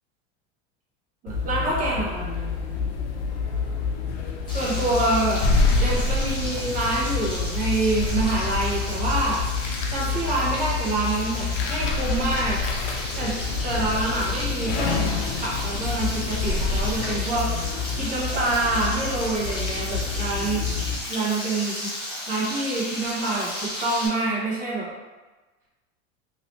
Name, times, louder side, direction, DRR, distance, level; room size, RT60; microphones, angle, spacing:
voice 1, 1.2-2.3 4.5-5.4 5.8-9.4 9.9-12.6 13.2-13.3 13.6-15.0 15.4-20.6 21.1-21.9 22.3-24.9, right 2 dB, 25° right, -5 dB, 0.8 m, -26 dB
sound 1, 1.3-21.0, left 4 dB, 85° left, 0.7 m, -27 dB
Frying (food), 4.5-24.1, left 1 dB, 15° left, 0.4 m, -34 dB
3.1 x 2.8 x 3.0 m, 1.2 s
supercardioid pair, 170°, 32 cm